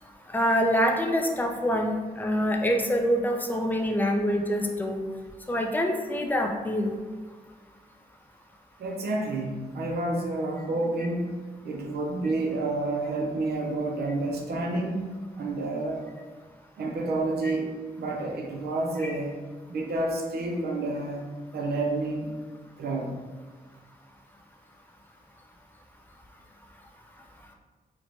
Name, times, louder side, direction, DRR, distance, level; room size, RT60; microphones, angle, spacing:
voice 1, 0.3-5.0 5.5-7.0 19.0-19.1, equal, 10° left, 2 dB, 0.4 m, -25 dB
voice 2, 8.8-11.4 11.6-16.1 16.8-17.7 18.0-22.3 22.8-23.1, right 2 dB, 75° right, 1 dB, 0.5 m, -29 dB
3.0 x 2.1 x 2.5 m, 1.4 s
cardioid pair, 60°, 17 cm